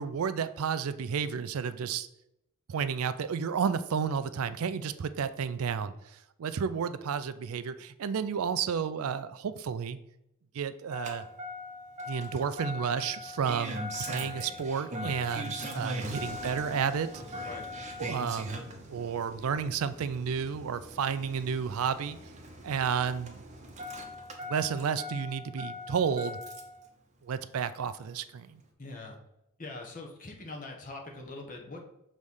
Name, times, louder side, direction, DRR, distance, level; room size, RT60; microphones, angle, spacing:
voice 1, 0.0-2.1 2.7-10.0 10.5-11.3 12.1-17.5 18.0-22.2 22.6-23.4 24.4-26.4 27.2-28.6, right 6 dB, 75° right, 13 dB, 0.4 m, -32 dB
Engine starting, 10.9-26.8 28.1-28.2, equal, 30° right, 0.8 m, -40 dB
voice 2, 15.8-16.1 17.5-17.7 28.8-29.2 29.6-31.9, left 2 dB, 35° left, 1 dB, 1.1 m, -43 dB
6.4 x 3.2 x 5.4 m, 0.82 s
head